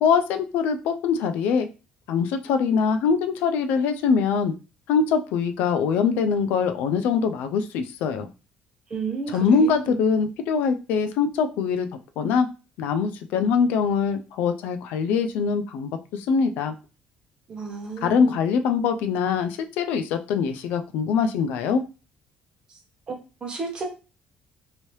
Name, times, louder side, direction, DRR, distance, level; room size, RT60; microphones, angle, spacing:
voice 1, 0.0-1.7 2.1-4.5 4.9-8.3 9.3-11.9 12.2-12.5 12.8-16.7 18.0-21.8, left 6 dB, 80° left, 7 dB, 0.4 m, -23 dB
voice 2, 8.9-10.0 17.5-18.4 22.7-22.8 23.1-23.2 23.4-23.9, right 4 dB, 30° right, 1 dB, 0.9 m, -32 dB
3.0 x 2.7 x 3.1 m, 0.31 s
cardioid pair, 155°, 3 cm